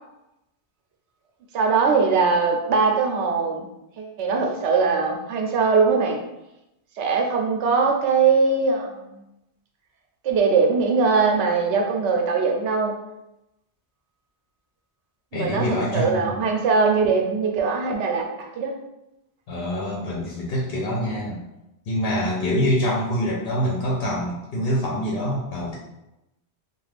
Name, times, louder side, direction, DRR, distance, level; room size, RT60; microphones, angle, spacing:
voice 1, 1.5-3.6 4.0-6.2 7.0-9.2 10.2-12.9 15.3-18.7, right 4 dB, 90° right, 2 dB, 0.9 m, -21 dB
voice 2, 15.3-16.3 19.5-21.4 21.9-25.8, equal, 65° left, -3 dB, 0.8 m, -25 dB
2.4 x 2.3 x 3.3 m, 0.91 s
omnidirectional pair, 1.1 m